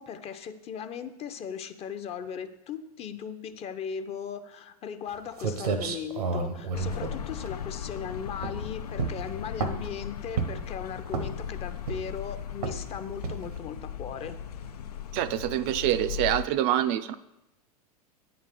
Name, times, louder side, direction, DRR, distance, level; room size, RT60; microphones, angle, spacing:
voice 1, 0.0-14.4, left 7 dB, 30° left, 9 dB, 0.6 m, -38 dB
sound 1, 5.1-5.2 5.4-8.0 8.4-8.7 9.0-9.9 10.4-10.7 11.1-11.5 11.9-12.2 12.6-12.9 13.2-13.6, right 5 dB, 80° right, 0.9 m, -31 dB
sound 2, 6.7-16.4, left 8 dB, 90° left, 0.4 m, -37 dB
voice 2, 15.1-17.1, right 12 dB, 45° right, 11 dB, 0.4 m, -26 dB
8.7 x 4.0 x 6.6 m, 0.90 s
hypercardioid pair, 95°, 19 cm